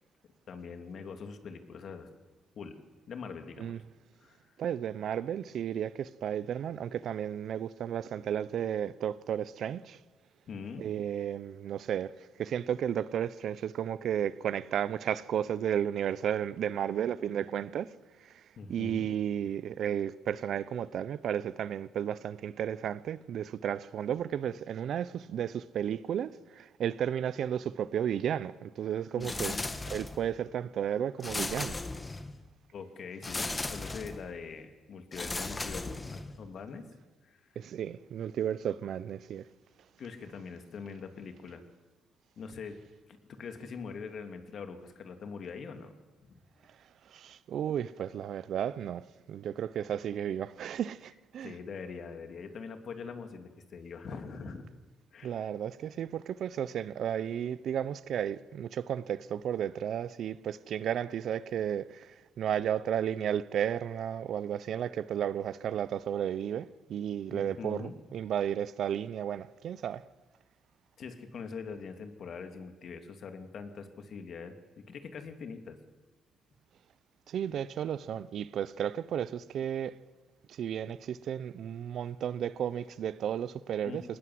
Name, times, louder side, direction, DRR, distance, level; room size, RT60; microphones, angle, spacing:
voice 1, 0.5-2.1 2.6-2.8 3.1-3.8 4.2-4.6 10.5-10.8 18.6-19.1 29.2-29.7 32.7-36.8 37.2-37.4 40.0-41.6 42.4-42.8 43.1-45.9 46.3-46.4 51.4-54.6 55.1-55.4 67.3-67.9 71.0-75.8 83.8-84.0, left 5 dB, 60° left, 2.5 m, -43 dB
voice 2, 4.6-10.0 10.8-17.9 18.2-29.6 29.9-31.8 37.6-39.5 47.1-51.5 55.2-70.0 77.3-80.0 80.5-84.0, right 9 dB, 70° right, 0.7 m, -33 dB
sound 1, 29.2-30.3 31.2-32.4 33.2-34.3 35.1-36.4, left 2 dB, 20° left, 1.4 m, -36 dB
21.0 x 19.0 x 7.8 m
cardioid pair, 90°, 0 cm